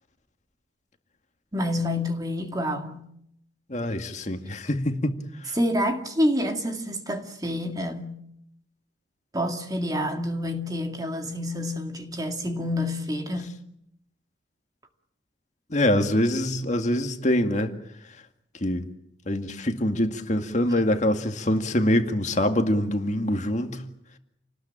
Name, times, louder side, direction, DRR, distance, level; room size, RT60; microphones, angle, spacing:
voice 1, 1.5-3.1 5.5-8.2 9.3-13.6, left 1 dB, 20° right, 2.1 m, -28 dB
voice 2, 3.7-5.5 15.7-17.7 18.6-18.9 19.3-23.8, left 1 dB, 40° left, 2.1 m, -24 dB
28.5 x 19.5 x 8.9 m
head